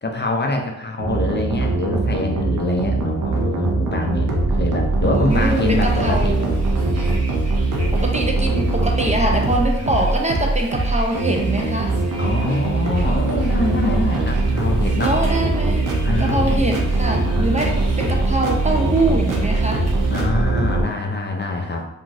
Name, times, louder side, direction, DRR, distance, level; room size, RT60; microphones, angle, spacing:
voice 1, 0.0-6.4 10.0-10.1 12.2-15.1 16.0-16.8 17.3-17.9 20.1-21.9, left 2 dB, 35° left, 2 dB, 0.4 m, -25 dB
sound 1, 1.0-20.8, right 2 dB, 75° right, 0.6 m, -21 dB
voice 2, 5.0-6.5 7.9-12.0 15.0-15.9 16.2-19.9, right 1 dB, 20° right, 1 dB, 0.5 m, -23 dB
Bus, 5.3-20.2, right 1 dB, 50° right, 0.9 m, -40 dB
2.8 x 2.5 x 2.5 m, 0.89 s
cardioid pair, 45°, 32 cm